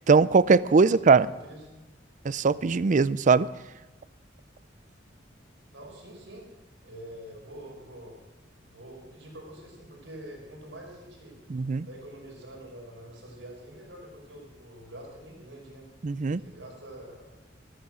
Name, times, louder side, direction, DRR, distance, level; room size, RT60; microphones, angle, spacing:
voice 1, 0.0-1.3 2.2-3.5 11.5-11.9 16.0-16.4, right 4 dB, 45° right, 18 dB, 0.4 m, -21 dB
voice 2, 0.7-1.8 5.7-6.5 6.8-8.2 8.6-11.4 11.9-15.9 16.4-17.4, right 1 dB, 90° right, -1 dB, 5.5 m, -46 dB
14.0 x 13.5 x 6.1 m, 1.1 s
head